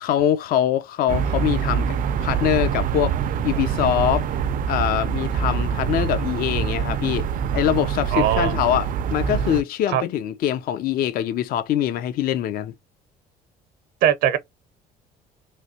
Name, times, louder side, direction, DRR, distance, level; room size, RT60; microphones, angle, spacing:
voice 1, 0.0-3.2 3.4-4.3 4.7-7.3 7.5-12.7, left 11 dB, 60° left, 0.4 m, -23 dB
sound 1, 1.1-9.6, right 7 dB, 55° right, 0.4 m, -25 dB
voice 2, 8.1-8.5 9.9-10.0 14.0-14.4, right 10 dB, 80° right, 0.7 m, -20 dB
3.2 x 2.7 x 2.7 m
cardioid pair, 110°, 17 cm